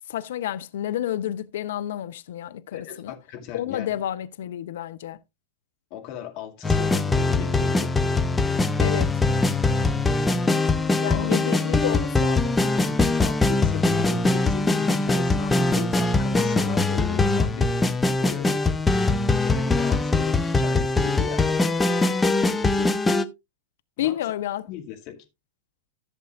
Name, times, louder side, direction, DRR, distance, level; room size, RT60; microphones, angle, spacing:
voice 1, 0.1-3.1 3.5-5.2 8.8-9.1 11.0-12.6 24.0-24.7, left 12 dB, 60° left, 0.5 m, -30 dB
voice 2, 2.7-4.0 5.9-7.9 11.1-11.3 11.7-12.0 12.9-17.7 18.2-18.8 19.4-21.6 22.5-23.0 24.0-24.3 24.7-25.2, left 10 dB, 45° left, 2.1 m, -37 dB
sound 1, 6.6-23.3, left 3 dB, 10° left, 0.7 m, -22 dB
14.0 x 6.7 x 2.4 m
figure-of-eight pair, 90°, 0 cm